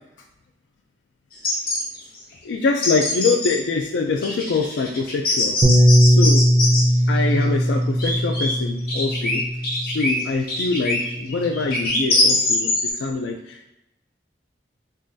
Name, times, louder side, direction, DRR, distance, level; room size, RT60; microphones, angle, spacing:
sound 1, 1.3-1.8 2.1-2.2 2.7-3.5 4.2-6.8 7.4-8.5 8.8-12.9, left 2 dB, 55° left, 0.8 m, -23 dB
voice 1, 2.4-5.6 6.1-6.4 7.1-9.4 9.8-13.7, left 4 dB, 80° left, 3 dB, 0.3 m, -24 dB
Bass guitar, 5.6-10.1 10.9-11.9, equal, 40° right, 0.4 m, -19 dB
3.7 x 3.2 x 2.6 m, 0.91 s
head